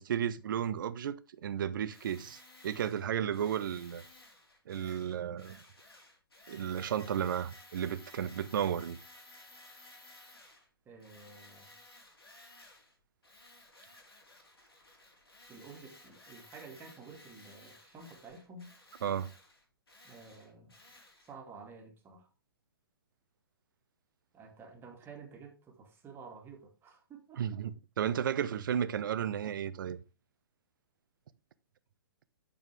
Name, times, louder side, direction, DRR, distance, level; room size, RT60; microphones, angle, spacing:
voice 1, 0.0-4.0 4.7-5.6 6.5-9.0 19.0-19.3 27.4-30.0, right 9 dB, 60° right, 0.8 m, -33 dB
Tools, 1.9-10.7 11.0-12.9 13.2-21.3, left 2 dB, 85° left, 4.5 m, -57 dB
voice 2, 10.9-11.8 15.5-18.7 20.0-20.7 21.3-22.3 24.3-27.4, right 4 dB, 20° right, 2.2 m, -51 dB
9.2 x 6.7 x 3.3 m
hypercardioid pair, 125°, 12 cm